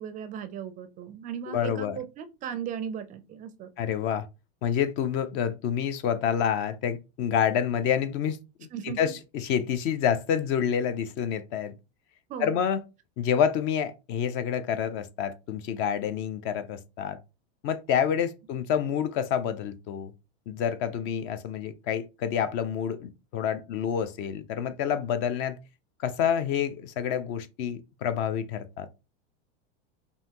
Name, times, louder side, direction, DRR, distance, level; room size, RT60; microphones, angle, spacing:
voice 1, 0.0-3.7 8.7-9.0 12.3-12.6, right 8 dB, 25° right, 0.4 m, -37 dB
voice 2, 1.5-2.0 3.8-4.3 4.6-11.7 12.4-12.8 13.2-17.2 17.6-20.1 20.5-25.6 26.0-28.9, left 8 dB, 40° left, 0.5 m, -28 dB
5.5 x 2.6 x 2.8 m
supercardioid pair, 145°, 31 cm